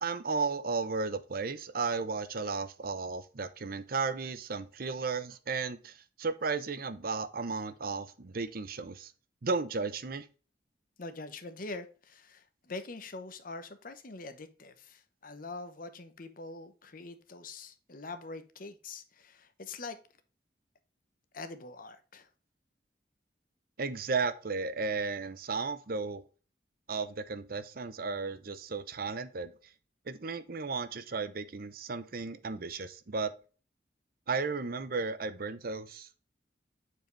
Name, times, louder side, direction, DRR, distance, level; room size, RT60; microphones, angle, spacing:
voice 1, 0.0-9.1 9.4-10.2 23.8-26.2 26.9-29.5 30.1-33.3 34.3-36.1, right 4 dB, 55° right, 0.7 m, -34 dB
voice 2, 11.0-20.0 21.3-22.3, left 3 dB, 55° left, 0.9 m, -44 dB
7.7 x 4.7 x 3.2 m
head